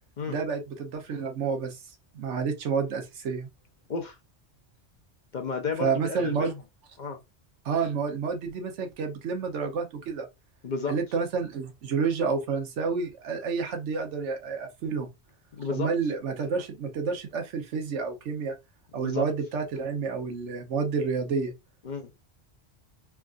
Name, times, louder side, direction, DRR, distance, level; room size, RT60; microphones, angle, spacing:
voice 1, 0.3-1.8 2.1-3.5 5.8-6.5 7.6-10.3 10.9-15.1 15.7-18.5 18.9-21.5, right 5 dB, 90° right, 1.1 m, -29 dB
voice 2, 5.3-6.6 7.0-7.2 10.6-11.0 15.5-15.9 19.0-19.3 21.8-22.1, left 4 dB, 50° left, 0.6 m, -32 dB
3.4 x 2.4 x 2.4 m
omnidirectional pair, 1.2 m